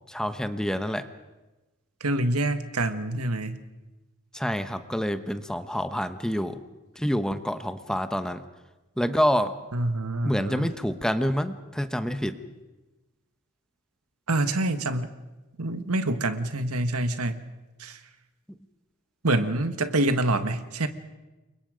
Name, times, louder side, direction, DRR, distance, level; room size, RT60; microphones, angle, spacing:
voice 1, 0.1-1.0 4.3-6.6 7.0-8.4 9.0-9.5 10.2-12.3, equal, 5° left, 9 dB, 1.0 m, -27 dB
voice 2, 2.0-3.6 9.7-10.7 14.3-15.1 15.6-17.4 17.8-18.0 19.2-20.9, right 2 dB, 85° right, 10 dB, 1.6 m, -26 dB
29.5 x 23.5 x 5.1 m, 1.1 s
head